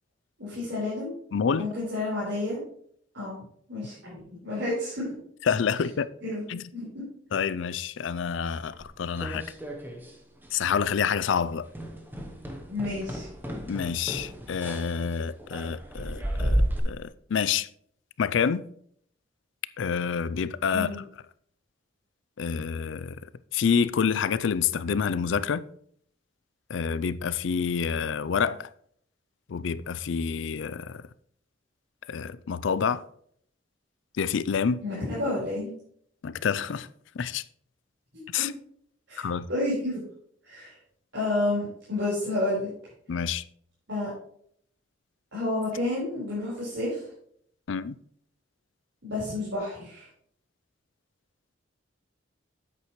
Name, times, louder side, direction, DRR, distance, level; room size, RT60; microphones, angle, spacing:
voice 1, 0.4-1.2 1.6-2.6 3.1-3.4 3.7-5.1 6.2-6.4 6.7-7.0 12.7-13.3 20.7-20.9 34.8-35.7 38.1-38.5 39.1-40.0 40.4-40.8 41.1-42.7 43.9-44.1 45.3-47.1 49.0-50.1, left 2 dB, 75° right, 4.3 m, -30 dB
voice 2, 1.3-1.7 5.4-6.1 6.5-6.7 7.3-9.5 10.5-11.7 13.7-17.7 18.2-18.7 19.8-21.0 22.4-23.2 23.5-25.6 26.7-28.7 29.5-31.0 32.1-33.0 34.2-34.8 36.2-36.9 37.1-37.4 38.3-38.5 39.2-39.5 43.1-43.4 47.7-48.0, left 6 dB, 75° left, 0.4 m, -28 dB
sound 1, 8.7-10.2 10.4-10.8 11.1-11.3 11.7-16.8, equal, 10° right, 0.8 m, -32 dB
9.3 x 8.4 x 3.1 m
head